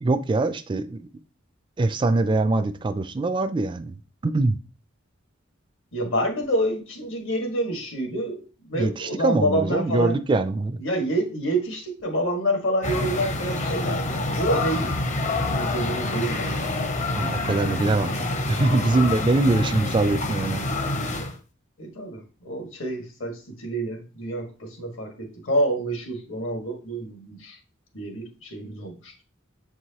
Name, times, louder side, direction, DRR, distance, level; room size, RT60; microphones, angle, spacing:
voice 1, 0.0-1.0 1.8-3.9 4.2-4.6 8.7-10.8 17.2-18.1 18.5-20.6, right 2 dB, 25° right, 0.3 m, -23 dB
voice 2, 5.9-8.4 8.7-10.2 10.8-15.0 15.5-16.7 21.8-27.6 27.9-29.1, right 1 dB, 70° left, 1.6 m, -28 dB
sound 1, 12.8-21.4, left 2 dB, 35° left, 0.7 m, -27 dB
7.1 x 4.6 x 2.8 m
head